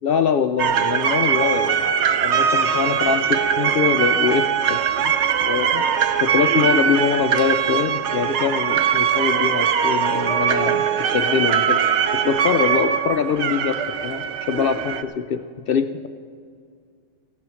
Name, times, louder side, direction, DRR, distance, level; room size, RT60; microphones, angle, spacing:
voice 1, 0.0-1.8 2.2-5.1 5.4-5.9 6.2-11.8 12.1-16.1, left 7 dB, 75° left, 9 dB, 0.5 m, -23 dB
sound 1, 0.6-15.0, right 8 dB, 60° right, 0.9 m, -21 dB
15.5 x 10.5 x 6.3 m, 2.2 s
omnidirectional pair, 1.5 m